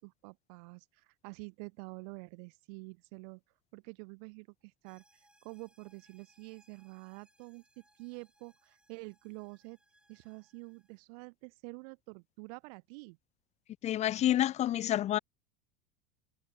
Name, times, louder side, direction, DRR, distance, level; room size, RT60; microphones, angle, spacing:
voice 1, 0.0-3.4 3.7-7.6 8.0-9.8 10.1-13.2, right 33 dB, 70° right, 4.2 m, -48 dB
sound 1, 4.8-11.0, right 1 dB, 5° right, 6.6 m, -69 dB
voice 2, 13.8-15.2, left 12 dB, 35° left, 0.5 m, -28 dB
supercardioid pair, 105°, 20 cm